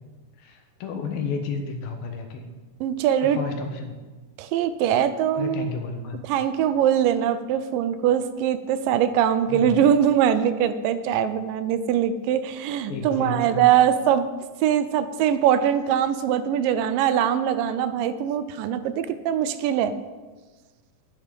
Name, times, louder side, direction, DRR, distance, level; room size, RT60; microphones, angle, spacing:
voice 1, 0.4-2.4 3.2-4.0 5.3-6.2 9.5-9.8 12.9-13.7, left 4 dB, 85° left, 5 dB, 3.1 m, -32 dB
voice 2, 2.8-3.4 4.4-5.7 6.2-14.3 14.6-19.9, right 9 dB, 80° right, 12 dB, 2.3 m, -22 dB
10.5 x 9.9 x 5.3 m, 1.3 s
omnidirectional pair, 4.0 m